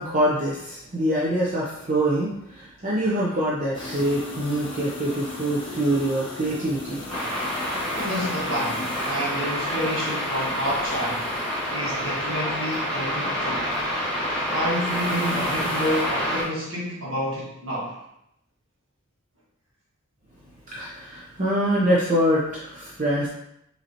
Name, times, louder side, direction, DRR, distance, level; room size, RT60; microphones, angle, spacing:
voice 1, 0.0-7.0 20.7-23.3, right 1 dB, 35° right, -6 dB, 0.6 m, -24 dB
sound 1, 3.7-16.5, left 2 dB, 25° left, 0.7 m, -39 dB
sound 2, 7.1-16.4, equal, 5° left, 1.7 m, -28 dB
voice 2, 7.9-11.3 11.7-13.7 14.5-18.0, equal, 60° right, -6 dB, 1.7 m, -29 dB
5.2 x 3.2 x 2.9 m, 0.80 s
head